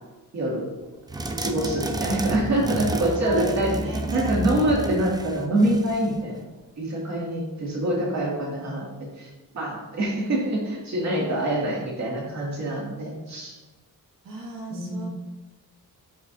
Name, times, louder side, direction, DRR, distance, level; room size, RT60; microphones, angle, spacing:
voice 1, 0.3-0.7 1.4-3.8 4.1-6.5 6.8-8.9 9.2-9.3 9.5-13.6 14.7-15.1, right 1 dB, 50° right, -3 dB, 2.3 m, -25 dB
sound 1, 1.1-6.1, right 2 dB, 10° right, 0.3 m, -30 dB
voice 2, 3.2-4.3 11.2-11.4 14.2-15.1, right 3 dB, 70° right, -1 dB, 1.6 m, -36 dB
12.0 x 5.1 x 2.6 m, 1.2 s
wide cardioid pair, 170°, 35 cm